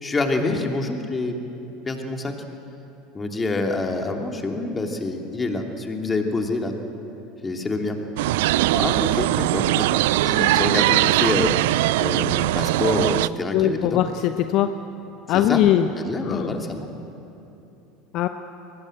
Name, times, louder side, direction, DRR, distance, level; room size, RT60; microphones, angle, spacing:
voice 1, 0.0-1.4 1.8-2.3 3.1-6.7 7.4-8.0 8.7-11.5 12.0-14.0 15.3-15.6 16.0-16.9, left 3 dB, 20° left, 3 dB, 2.9 m, -26 dB
sound 1, 8.2-13.3, right 16 dB, 65° right, 0.4 m, -20 dB
voice 2, 13.5-14.7 15.3-15.9 16.3-16.6 18.1-18.3, left 12 dB, 50° left, 9 dB, 0.9 m, -21 dB
22.5 x 19.5 x 7.9 m, 2.9 s
figure-of-eight pair, 75°, 0 cm